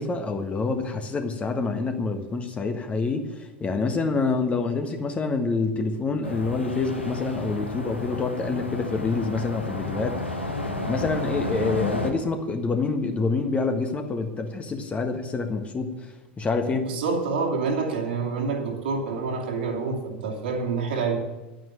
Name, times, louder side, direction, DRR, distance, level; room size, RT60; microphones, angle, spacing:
voice 1, 0.0-10.2 10.9-15.9 16.4-16.9, left 4 dB, 20° left, 5 dB, 1.5 m, -27 dB
sound 1, 6.2-12.1, left 2 dB, 90° left, 1.5 m, -31 dB
voice 2, 16.7-21.2, right 4 dB, 65° right, 1 dB, 2.8 m, -27 dB
11.0 x 9.2 x 9.1 m, 1.1 s
figure-of-eight pair, 80°, 6 cm